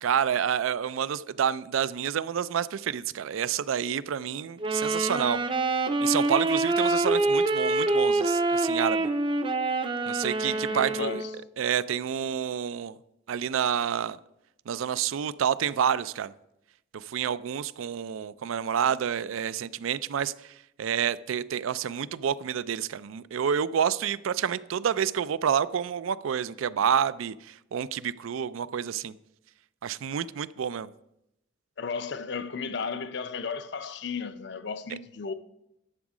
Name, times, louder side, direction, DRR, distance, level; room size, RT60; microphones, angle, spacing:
voice 1, 0.0-5.4 6.0-9.1 10.1-11.2 11.6-13.0 13.3-14.2 14.7-16.3 16.9-20.3 20.8-29.1 29.8-30.9, right 8 dB, 85° right, 0.4 m, -28 dB
Wind instrument woodwind instrument, 4.6-11.4, right 2 dB, 25° right, 0.5 m, -26 dB
voice 2, 10.4-11.3 31.8-35.3, left 5 dB, 60° left, 0.6 m, -34 dB
11.0 x 7.1 x 4.9 m
head